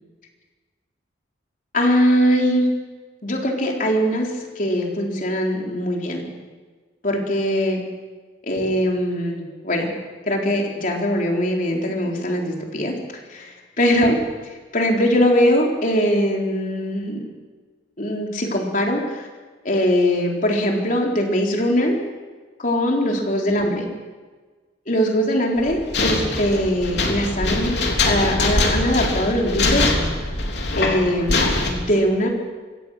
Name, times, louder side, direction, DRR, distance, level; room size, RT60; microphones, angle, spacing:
voice 1, 1.7-2.7 3.2-4.3 4.6-6.3 7.0-7.8 8.4-9.9 10.3-12.9 13.3-14.2 14.7-17.2 18.0-19.3 19.6-22.0 22.6-23.9 24.9-29.9 30.8-32.3, equal, 45° left, 0 dB, 4.0 m, -21 dB
sound 1, 25.6-31.7, left 2 dB, 70° left, 3.4 m, -22 dB
25.0 x 17.0 x 6.5 m, 1.4 s
head